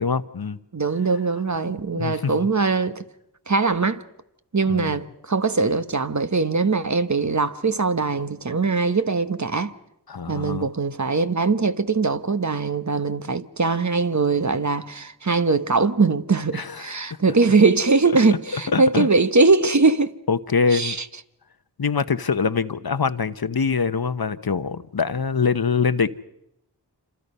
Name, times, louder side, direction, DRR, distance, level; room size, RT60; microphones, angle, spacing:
voice 1, 0.0-0.6 1.9-2.4 4.7-4.9 10.1-10.7 16.5-16.9 18.5-19.1 20.3-21.0 21.8-26.1, left 5 dB, 60° left, 0.9 m, -24 dB
voice 2, 0.7-3.0 3.5-4.0 4.5-9.7 10.3-20.2 20.7-21.0, right 4 dB, 45° right, 1.1 m, -21 dB
27.5 x 26.5 x 5.5 m
wide cardioid pair, 50°, 40 cm